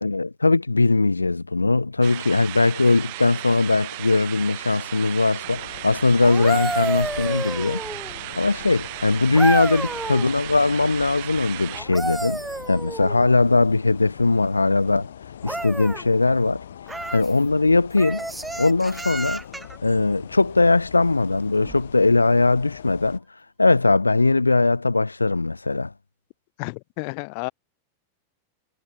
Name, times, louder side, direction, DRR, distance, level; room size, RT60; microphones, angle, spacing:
voice 1, 0.0-7.8 8.4-12.4 12.7-15.1 15.4-16.6 17.1-18.2 18.6-19.4 19.8-23.2 23.6-25.9, left 3 dB, 80° left, 0.9 m, -20 dB
sound 1, 2.0-11.8, right 24 dB, 50° right, 4.7 m, -36 dB
sound 2, 5.4-23.2, left 9 dB, 65° left, 4.3 m, -42 dB
sound 3, 6.2-8.2 9.4-10.3 11.7-13.3 15.4-16.0 16.9-17.3 18.0-19.8 21.6-21.8, right 2 dB, 5° right, 0.7 m, -30 dB
voice 2, 26.6-27.5, left 40 dB or more, 45° left, 0.3 m, -31 dB
figure-of-eight pair, 90°, 0 cm